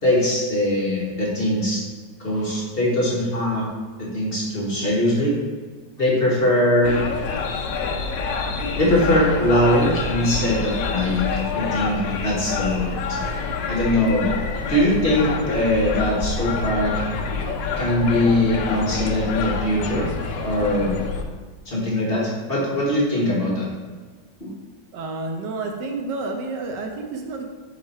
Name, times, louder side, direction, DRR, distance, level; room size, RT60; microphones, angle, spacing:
voice 1, 0.0-1.8 2.2-3.7 4.0-5.3 6.0-7.0 8.8-13.2 13.7-14.3 14.7-16.9 17.8-20.1 20.4-21.0 21.6-23.7 24.4-24.5, left 1 dB, 35° left, -4 dB, 1.6 m, -21 dB
sound 1, 6.8-21.2, left 4 dB, 80° left, 1.4 m, -27 dB
voice 2, 24.9-27.5, right 3 dB, 75° right, 3 dB, 1.4 m, -30 dB
7.7 x 4.6 x 4.3 m, 1.5 s
omnidirectional pair, 2.0 m